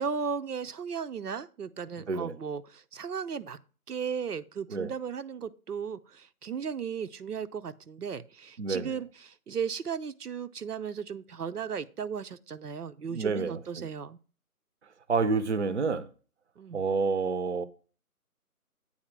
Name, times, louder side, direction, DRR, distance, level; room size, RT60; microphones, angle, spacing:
voice 1, 0.0-3.6 3.9-14.2 16.6-16.8, right 6 dB, 85° right, 0.8 m, -36 dB
voice 2, 8.6-9.0 13.1-13.9 15.1-16.1 16.7-17.7, right 4 dB, 50° right, 0.6 m, -29 dB
8.8 x 4.2 x 5.9 m
figure-of-eight pair, 170°, 45 cm